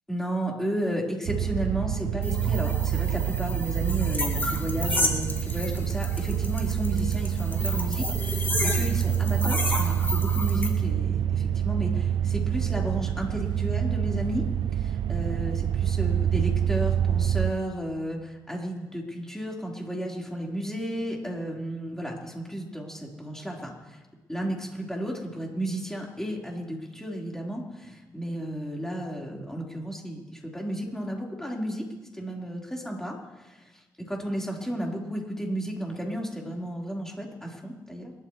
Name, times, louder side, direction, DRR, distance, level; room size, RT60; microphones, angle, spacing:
voice 1, 0.1-24.0 24.3-31.9 32.1-33.6 34.0-38.1, equal, 5° left, -3 dB, 4.5 m, -33 dB
sound 1, 1.3-17.5, right 10 dB, 85° right, 0.6 m, -27 dB
sound 2, 2.2-10.7, left 1 dB, 25° left, 3.9 m, -32 dB
30.0 x 13.5 x 3.3 m, 1.2 s
cardioid pair, 70°, 8 cm